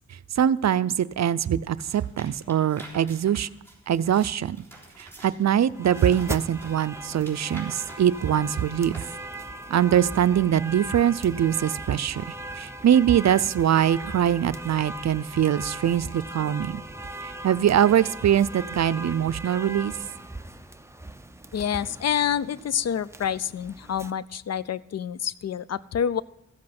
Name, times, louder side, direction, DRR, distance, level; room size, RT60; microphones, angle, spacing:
voice 1, 0.3-3.5 3.9-4.6 5.0-9.0 9.7-16.8 17.2-19.9, right 10 dB, 65° right, 16 dB, 0.5 m, -23 dB
sound 1, 1.8-9.5, right 2 dB, 10° left, 3.7 m, -48 dB
sound 2, 5.7-24.1, right 1 dB, 10° right, 0.6 m, -39 dB
voice 2, 21.5-26.2, left 8 dB, 60° left, 18 dB, 0.4 m, -27 dB
15.0 x 7.6 x 5.9 m, 0.91 s
wide cardioid pair, 85°, 29 cm